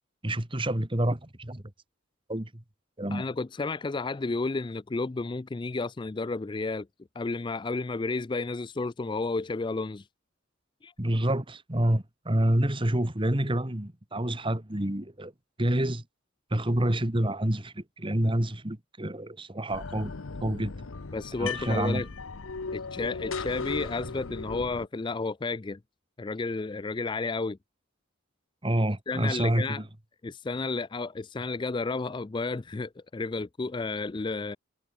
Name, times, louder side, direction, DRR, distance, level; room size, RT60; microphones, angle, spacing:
voice 1, 0.2-1.6 2.3-2.6 3.0-3.2 11.0-15.3 15.6-16.0 16.5-20.1 20.4-20.7 21.4-22.1 28.6-29.9, right 1 dB, 25° right, 1.9 m, -28 dB
voice 2, 3.1-6.9 7.2-10.1 10.8-10.9 21.1-22.1 22.7-25.8 26.2-27.6 29.1-29.8 30.2-34.6, left 3 dB, 25° left, 0.4 m, -32 dB
sound 1, 19.7-24.9, left 4 dB, 80° left, 0.9 m, -37 dB
head